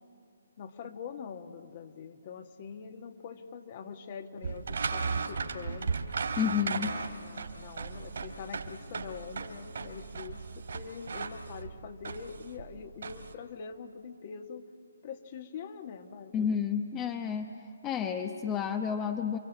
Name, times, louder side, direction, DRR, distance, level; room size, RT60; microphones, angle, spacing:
voice 1, 0.6-6.0 6.7-14.7 15.0-16.3, left 6 dB, 40° left, 6 dB, 1.7 m, -44 dB
sound 1, 4.4-13.3, right 5 dB, 65° right, 3.0 m, -36 dB
voice 2, 6.4-6.9 16.3-17.5 17.8-19.4, left 8 dB, 20° left, 5 dB, 1.0 m, -30 dB
28.5 x 23.5 x 8.6 m, 2.4 s
figure-of-eight pair, 145°, 0 cm